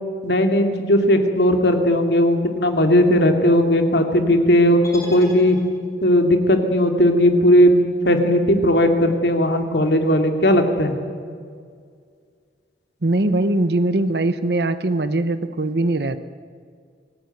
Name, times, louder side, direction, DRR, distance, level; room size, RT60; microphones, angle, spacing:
voice 1, 0.2-5.6 6.0-7.7 8.0-10.9, equal, 75° left, 5 dB, 2.7 m, -17 dB
sound 1, 4.8-6.1, left 1 dB, 15° left, 5.7 m, -39 dB
voice 2, 13.0-16.2, right 2 dB, 65° right, 11 dB, 0.9 m, -21 dB
26.5 x 17.5 x 9.3 m, 2.1 s
head